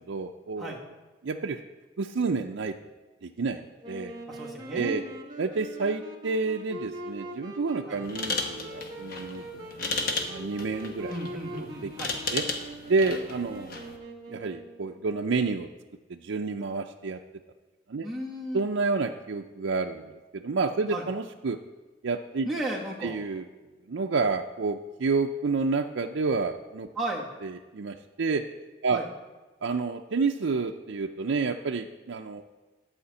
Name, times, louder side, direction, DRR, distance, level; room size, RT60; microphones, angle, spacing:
voice 1, 0.1-0.8 1.2-1.6 2.0-2.7 3.2-4.2 4.7-5.0 5.4-9.7 10.3-11.1 11.6-11.9 12.3-12.4 12.9-14.0 14.3-15.7 16.1-17.2 17.9-18.1 18.5-21.6 22.0-22.5 23.0-23.4 23.9-26.9 27.4-28.4 28.8-29.0 29.6-32.4, right 4 dB, 85° right, 3 dB, 0.5 m, -29 dB
Wind instrument woodwind instrument, 3.8-14.9, right 1 dB, 20° right, 1.3 m, -42 dB
voice 2, 4.3-5.0 7.8-8.0 11.1-12.1 18.0-18.7 20.9-21.1 22.4-23.2 26.9-27.3 28.9-29.1, right 1 dB, ahead, -2 dB, 1.7 m, -34 dB
sound 1, 8.0-14.0, left 3 dB, 50° left, 1.1 m, -35 dB
11.5 x 5.0 x 8.2 m, 1.2 s
head